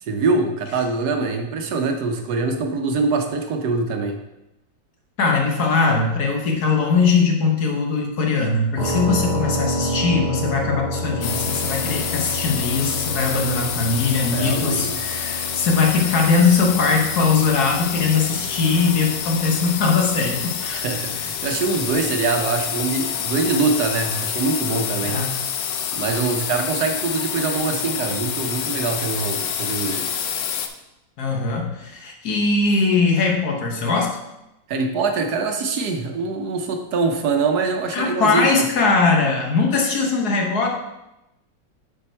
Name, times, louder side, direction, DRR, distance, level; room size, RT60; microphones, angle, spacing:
voice 1, 0.0-4.2 9.1-9.2 14.3-15.0 20.7-25.2 25.9-30.2 34.7-38.7, right 4 dB, 70° right, 5 dB, 1.2 m, -24 dB
voice 2, 5.2-20.8 25.0-25.4 31.2-34.2 37.9-40.7, left 4 dB, 65° left, 1 dB, 1.5 m, -20 dB
sound 1, 8.8-22.5, equal, 25° right, 1.4 m, -31 dB
sound 2, 11.2-30.7, left 8 dB, 85° left, 1.3 m, -27 dB
7.0 x 5.1 x 4.4 m, 0.92 s
omnidirectional pair, 1.9 m